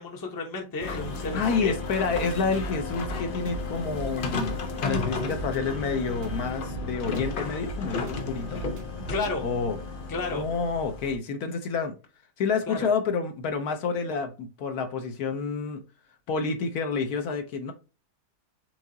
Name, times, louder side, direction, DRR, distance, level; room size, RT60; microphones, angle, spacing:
voice 1, 0.0-1.7 9.1-9.4 10.1-10.4 12.7-12.9, left 3 dB, 20° left, 0.6 m, -32 dB
sound 1, 0.8-11.2, left 3 dB, 85° left, 0.4 m, -33 dB
voice 2, 1.3-8.6 9.4-9.8 10.3-12.0 12.4-15.8 16.3-17.7, left 5 dB, 65° left, 1.1 m, -29 dB
sound 2, 2.1-9.3, right 2 dB, 75° right, 1.5 m, -40 dB
4.7 x 3.7 x 2.6 m
omnidirectional pair, 1.8 m